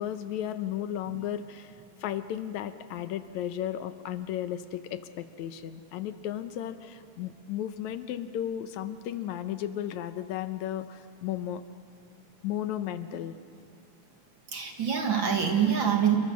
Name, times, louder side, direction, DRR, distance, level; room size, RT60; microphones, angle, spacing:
voice 1, 0.0-1.7 2.0-11.6 12.4-13.3, left 11 dB, 80° left, 11 dB, 2.1 m, -34 dB
voice 2, 14.5-16.2, right 8 dB, 45° right, 3 dB, 2.3 m, -25 dB
28.0 x 23.5 x 6.3 m, 2.8 s
omnidirectional pair, 3.4 m